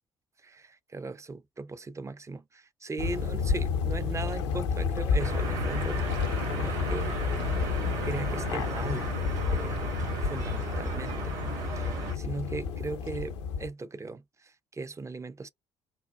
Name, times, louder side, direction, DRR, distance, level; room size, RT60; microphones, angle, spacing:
voice 1, 0.4-7.2 8.0-9.2 9.5-9.9 10.2-11.3 11.8-15.5, right 3 dB, 20° right, 0.5 m, -38 dB
sound 1, 3.0-13.7, left 5 dB, 80° left, 0.6 m, -30 dB
sound 2, 5.2-12.2, right 4 dB, 60° right, 1.4 m, -36 dB
3.7 x 2.2 x 2.5 m
figure-of-eight pair, 50°, 15 cm